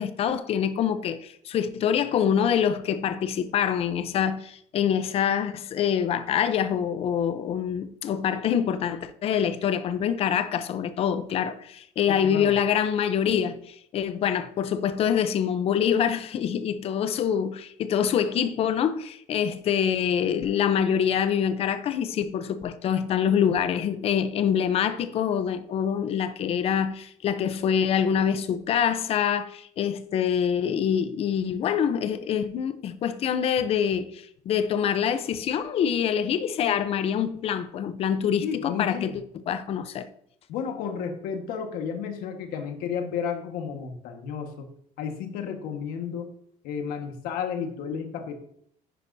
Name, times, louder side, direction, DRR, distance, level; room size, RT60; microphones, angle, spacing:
voice 1, 0.0-40.1, left 8 dB, 40° left, 0.6 m, -25 dB
voice 2, 12.1-12.5 38.4-39.2 40.5-44.7 45.0-46.3 46.6-48.4, left 7 dB, 75° left, 1.5 m, -32 dB
10.0 x 9.8 x 2.7 m
cardioid pair, 170°, 15 cm